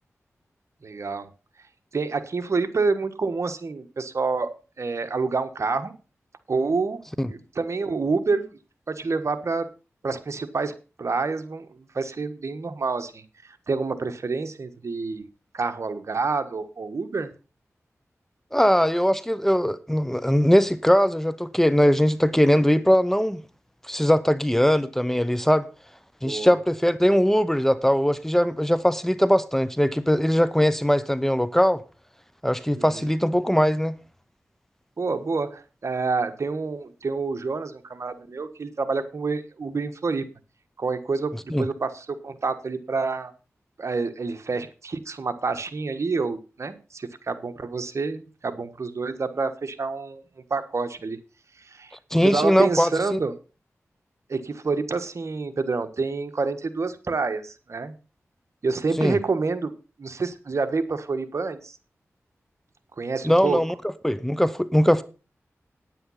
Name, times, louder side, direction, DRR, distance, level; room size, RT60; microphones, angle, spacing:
voice 1, 0.8-1.3 1.9-4.5 4.8-5.9 6.5-7.0 7.3-8.4 8.9-9.7 10.0-13.2 13.7-15.2 15.5-17.3 26.2-26.5 32.8-33.0 35.0-40.2 40.8-43.3 43.8-50.2 50.5-51.2 51.7-51.9 52.2-53.3 54.3-57.9 58.6-59.7 60.0-61.7 63.0-63.6, right 4 dB, 65° right, 1.4 m, -28 dB
voice 2, 18.5-23.4 23.8-25.7 26.2-31.8 32.4-33.9 41.5-41.7 52.1-53.2 59.0-59.2 63.2-63.7 64.0-65.0, equal, 5° left, 0.8 m, -20 dB
9.5 x 9.1 x 5.7 m
cardioid pair, 50°, 5 cm